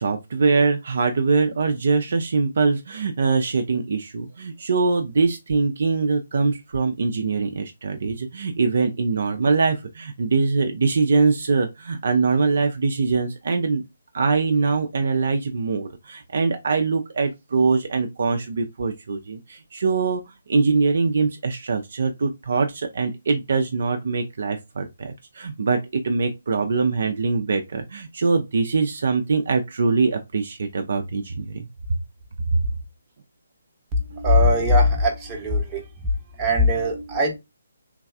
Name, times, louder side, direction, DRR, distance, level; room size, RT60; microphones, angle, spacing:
voice 1, 0.0-13.8 14.1-20.2 20.5-32.0, right 4 dB, 55° right, 0.4 m, -23 dB
voice 2, 33.9-35.8 36.4-37.4, left 1 dB, 15° right, 0.8 m, -20 dB
3.2 x 2.3 x 2.3 m
figure-of-eight pair, 140°, 0 cm